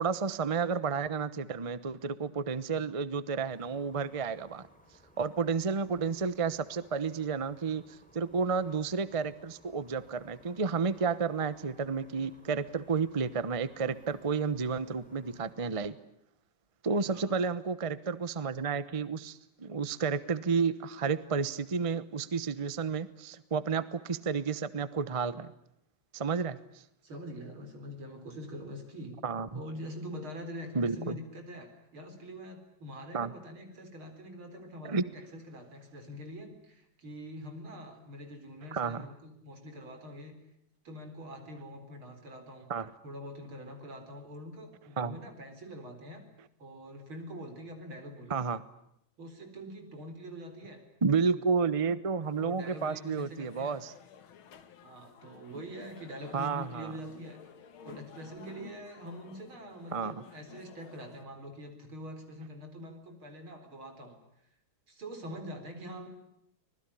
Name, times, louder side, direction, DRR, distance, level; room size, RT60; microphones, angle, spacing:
voice 1, 0.0-4.7 5.2-16.0 16.8-25.5 26.1-26.6 29.2-29.6 30.7-31.2 33.1-33.3 34.8-35.0 38.7-39.1 42.7-42.9 45.0-45.2 48.3-48.6 51.0-53.9 56.3-56.9 59.9-60.1, right 5 dB, 25° right, 15 dB, 0.7 m, -31 dB
sound 1, 3.4-15.5, equal, 5° left, 4.0 m, -61 dB
voice 2, 27.0-29.2 29.5-40.4 40.9-42.7 43.0-46.3 46.6-48.4 49.2-50.8 52.4-53.8 54.8-57.4 57.8-64.2 64.9-66.1, equal, 90° right, 6 dB, 5.0 m, -44 dB
sound 2, 52.2-61.2, left 8 dB, 80° left, 2.2 m, -54 dB
25.5 x 20.0 x 10.0 m, 0.76 s
omnidirectional pair, 2.2 m